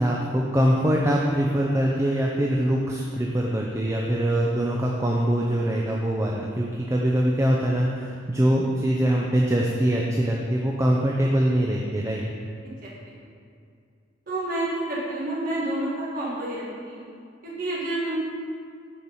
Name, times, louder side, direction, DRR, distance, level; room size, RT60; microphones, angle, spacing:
voice 1, 0.0-12.2, right 1 dB, 15° right, -2 dB, 0.6 m, -23 dB
voice 2, 12.8-13.2 14.3-17.0 17.4-18.2, right 1 dB, 50° right, -7 dB, 1.8 m, -29 dB
9.6 x 4.7 x 5.4 m, 2.3 s
head